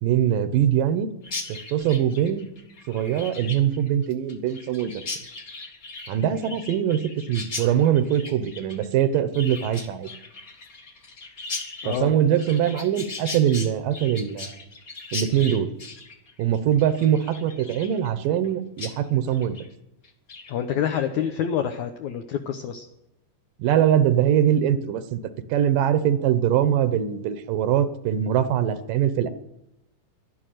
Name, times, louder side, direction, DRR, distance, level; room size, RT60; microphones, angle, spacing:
voice 1, 0.0-1.1 1.5-2.5 2.9-5.0 6.1-7.0 7.3-10.1 11.8-14.6 15.1-15.7 16.4-19.6 23.6-25.2 25.5-29.3, right 10 dB, 80° right, 12 dB, 2.5 m, -22 dB
Chirp tweet, 1.2-18.5 18.8-18.9 19.3-19.7 20.0-20.5, left 3 dB, 35° left, 1.7 m, -38 dB
voice 2, 20.5-22.9, left 9 dB, 70° left, 5 dB, 2.1 m, -27 dB
12.0 x 11.5 x 9.1 m, 0.86 s
omnidirectional pair, 3.9 m